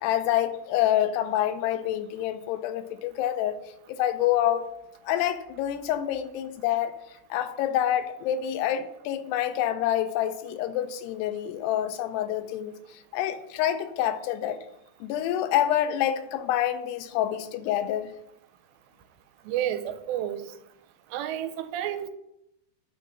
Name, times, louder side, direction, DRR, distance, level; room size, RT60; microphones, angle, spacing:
voice 1, 0.0-3.6 3.9-4.7 5.0-7.0 7.3-12.7 13.1-14.6 15.0-18.1, left 11 dB, 85° left, 2.5 m, -27 dB
voice 2, 19.4-20.4 21.1-22.1, right 11 dB, 90° right, 2.8 m, -30 dB
9.2 x 3.6 x 5.7 m
omnidirectional pair, 4.9 m